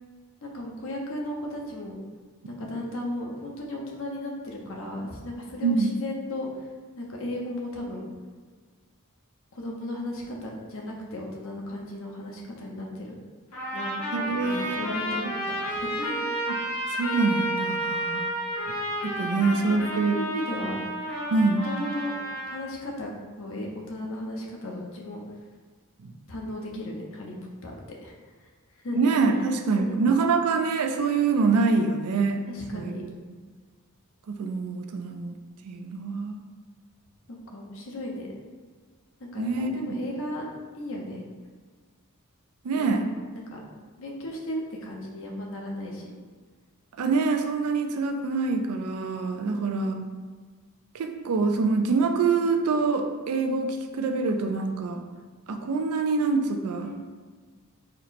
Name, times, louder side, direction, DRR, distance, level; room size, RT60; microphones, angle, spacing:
voice 1, 0.4-2.0 2.5-6.5 7.0-8.1 9.5-13.1 13.7-13.9 14.3-15.3 15.7-16.3 19.4-20.8 21.6-22.2 22.5-23.1 23.4-25.2 26.3-27.3 27.6-28.1 28.8-29.5 29.8-30.0 32.5-33.0 37.5-38.3 39.2-40.4 40.8-41.2 42.7-43.0 43.3-43.6 44.0-46.1 49.5-49.9 56.8-57.1, left 1 dB, 60° left, -1 dB, 0.7 m, -35 dB
voice 2, 5.6-5.9 14.1-15.3 16.5-16.6 16.9-18.3 19.0-20.2 21.3-21.7 26.0-26.1 29.0-32.4 32.7-33.1 34.3-35.3 35.6-36.4 39.4-39.9 42.6-43.0 47.0-50.1 50.9-55.0 55.5-56.9, right 4 dB, 90° right, 5 dB, 0.4 m, -25 dB
Trumpet, 13.5-22.6, equal, 85° left, 1.5 m, -31 dB
4.2 x 2.1 x 4.0 m, 1.5 s
head